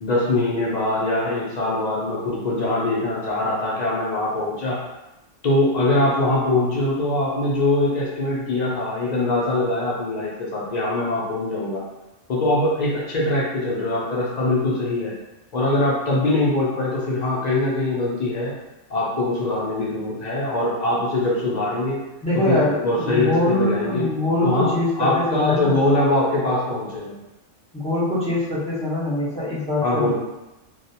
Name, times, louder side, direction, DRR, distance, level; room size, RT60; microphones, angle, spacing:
voice 1, 0.0-4.8 5.4-11.8 12.3-15.1 15.5-18.5 18.9-22.0 22.3-24.1 24.4-24.7 25.0-27.1 29.8-30.1, left 2 dB, 60° left, -6 dB, 0.4 m, -22 dB
voice 2, 22.2-25.8 27.7-30.1, left 1 dB, 5° left, -10 dB, 0.5 m, -23 dB
2.3 x 2.0 x 2.7 m, 0.98 s
omnidirectional pair, 1.3 m